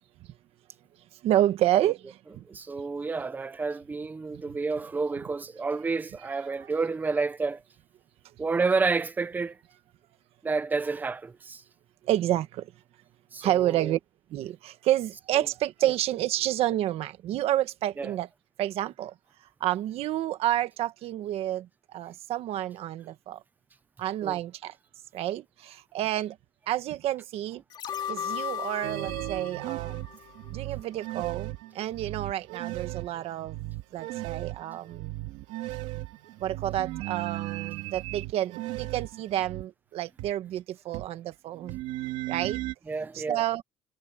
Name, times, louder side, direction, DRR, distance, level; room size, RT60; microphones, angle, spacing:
voice 1, 1.2-2.4 4.5-4.6 12.0-12.7 13.4-14.0 14.3-18.3 18.6-19.1 19.6-23.4 24.0-24.8 25.1-26.4 26.7-27.6 28.1-30.0 30.5-33.6 33.9-35.1 36.4-41.8 42.3-42.6 43.1-43.6, right 13 dB, 50° right, 1.4 m, -29 dB
voice 2, 2.5-7.6 8.4-9.6 10.4-11.6 13.3-14.0 18.0-18.1 24.2-24.4 42.9-43.4, right 4 dB, 15° right, 0.7 m, -30 dB
sound 1, 27.7-30.8 31.2-31.3, left 9 dB, 35° left, 2.8 m, -37 dB
sound 2, 28.8-39.6 40.2-40.3 40.9-41.1 41.3-42.7, right 17 dB, 70° right, 2.5 m, -36 dB
cardioid pair, 170°, 13 cm